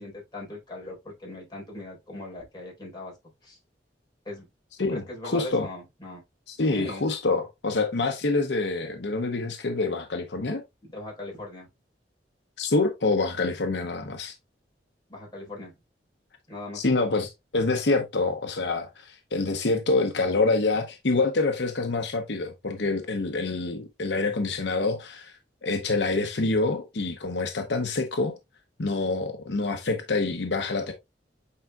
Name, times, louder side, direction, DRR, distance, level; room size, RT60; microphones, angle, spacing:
voice 1, 0.0-3.1 3.4-3.6 4.2-4.5 4.9-6.2 6.7-7.0 10.8-11.7 15.1-15.7 16.5-16.9, left 2 dB, 25° left, 4.1 m, -39 dB
voice 2, 4.8-5.7 6.5-10.6 12.6-14.3 16.7-28.4 28.8-30.9, left 3 dB, 75° left, 0.9 m, -26 dB
8.6 x 4.6 x 2.3 m
head